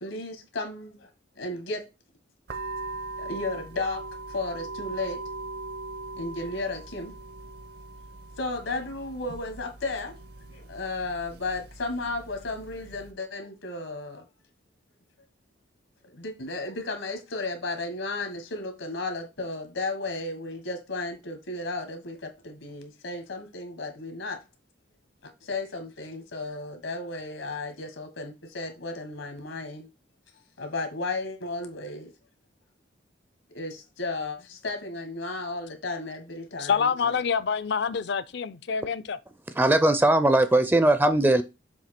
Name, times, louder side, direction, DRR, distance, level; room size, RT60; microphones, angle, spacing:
voice 1, 0.0-1.8 3.2-4.0 4.3-5.2 6.2-7.1 8.4-10.2 10.5-14.3 16.1-24.4 25.2-29.9 30.6-32.1 33.5-37.2, left 2 dB, 85° left, 1.6 m, -34 dB
sound 1, 2.5-13.1, right 2 dB, 55° right, 0.7 m, -40 dB
voice 2, 36.6-39.2, left 6 dB, 60° left, 0.5 m, -26 dB
voice 3, 39.6-41.4, right 1 dB, 10° right, 0.4 m, -20 dB
7.1 x 2.8 x 5.8 m
head